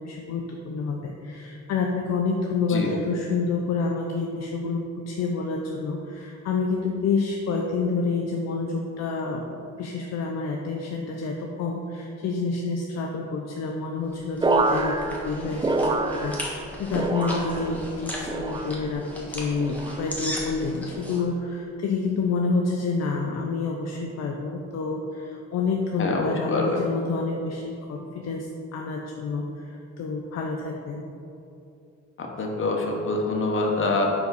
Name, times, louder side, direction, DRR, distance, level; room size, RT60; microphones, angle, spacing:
voice 1, 0.0-31.0, left 4 dB, 60° left, 1 dB, 0.6 m, -28 dB
sound 1, 14.1-21.2, left 1 dB, 5° left, 1.2 m, -37 dB
sound 2, 14.4-16.6 16.9-17.8 18.3-19.0 19.6-20.0 20.9-21.3 22.2-22.5, right 2 dB, 15° right, 0.4 m, -27 dB
voice 2, 26.0-26.8 32.2-34.1, left 3 dB, 40° left, 0 dB, 1.0 m, -25 dB
5.3 x 4.7 x 4.0 m, 2.7 s
cardioid pair, 90°, 30 cm